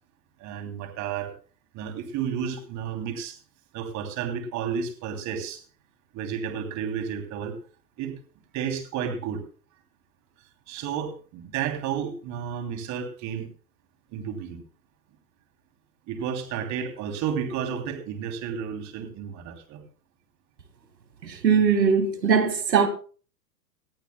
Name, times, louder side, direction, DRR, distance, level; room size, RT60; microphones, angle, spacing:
voice 1, 0.4-1.3 1.7-3.4 3.7-5.6 6.1-7.6 8.0-8.1 8.5-9.4 10.7-13.5 14.1-14.6 16.1-19.8, right 7 dB, 35° right, 3.0 m, -32 dB
voice 2, 21.2-22.9, right 6 dB, 90° right, 2.1 m, -21 dB
20.0 x 14.0 x 2.2 m
hypercardioid pair, 115°, 49 cm